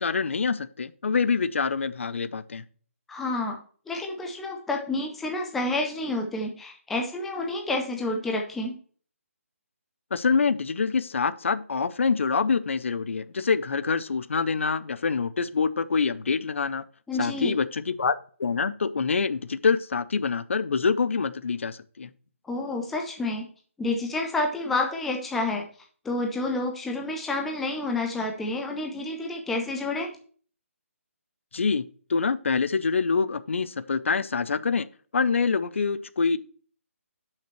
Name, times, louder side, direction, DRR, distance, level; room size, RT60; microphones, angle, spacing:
voice 1, 0.0-2.6 10.1-16.8 17.2-22.1 31.5-31.8 32.1-34.9 35.1-36.4, left 5 dB, 60° left, 15 dB, 0.6 m, -25 dB
voice 2, 3.1-3.6 3.9-8.8 17.1-17.6 22.4-23.5 23.8-25.6 26.0-30.1, left 2 dB, ahead, 1 dB, 0.4 m, -29 dB
10.0 x 5.8 x 3.1 m, 0.43 s
hypercardioid pair, 170°, 8 cm